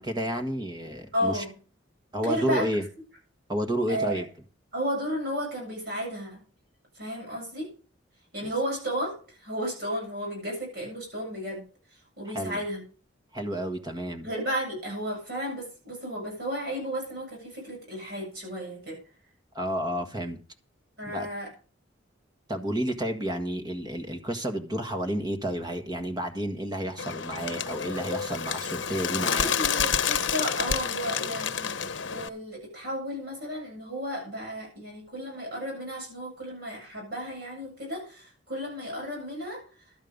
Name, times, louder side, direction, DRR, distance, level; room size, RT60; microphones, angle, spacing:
voice 1, 0.0-1.4 2.1-2.8 3.5-4.2 8.4-8.5 12.3-12.6 13.3-14.3 19.5-20.4 21.1-21.3 22.5-29.5, right 1 dB, 20° right, 6 dB, 1.6 m, -31 dB
voice 2, 1.1-1.6 2.2-2.7 3.9-4.2 4.7-6.4 6.9-7.7 8.3-11.7 12.2-12.8 14.2-19.0 21.0-21.5 29.4-39.9, equal, 50° right, -1 dB, 7.7 m, -33 dB
Bird, 27.0-32.3, left 7 dB, 70° left, 0.9 m, -29 dB
12.5 x 8.8 x 5.3 m, 0.39 s
head